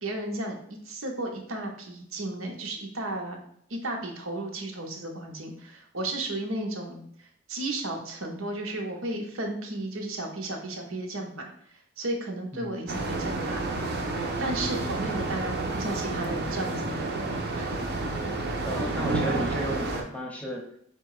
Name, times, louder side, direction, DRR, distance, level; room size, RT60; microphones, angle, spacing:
voice 1, 0.0-3.4 3.7-7.0 7.5-11.5 12.0-13.6 14.4-17.2 17.5-17.8, right 2 dB, 90° right, 1 dB, 0.9 m, -34 dB
sound 1, 12.9-20.0, right 2 dB, 55° right, 0.7 m, -30 dB
voice 2, 18.6-20.6, equal, 5° left, 0 dB, 0.7 m, -34 dB
4.6 x 2.2 x 4.7 m, 0.68 s
head